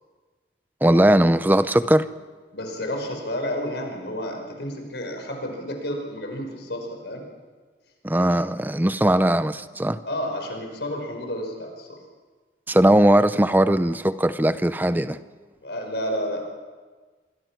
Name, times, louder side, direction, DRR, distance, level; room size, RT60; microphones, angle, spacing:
voice 1, 0.8-2.1 8.0-10.0 12.7-15.2, right 1 dB, 10° right, 13 dB, 0.6 m, -19 dB
voice 2, 2.5-7.2 10.0-12.0 15.6-16.4, equal, 75° left, 3 dB, 5.2 m, -31 dB
25.5 x 23.5 x 6.1 m, 1.4 s
head